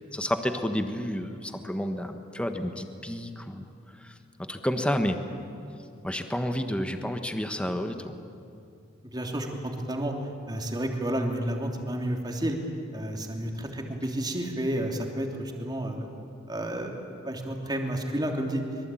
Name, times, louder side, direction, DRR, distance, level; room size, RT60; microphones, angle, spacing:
voice 1, 0.0-3.6 4.0-4.1 4.4-5.2 6.0-8.2, equal, 5° left, 6 dB, 1.3 m, -30 dB
voice 2, 9.1-10.1 10.5-12.6 12.9-16.1 16.5-18.6, right 1 dB, 20° right, 2 dB, 3.0 m, -31 dB
25.5 x 23.0 x 9.2 m, 2.5 s
head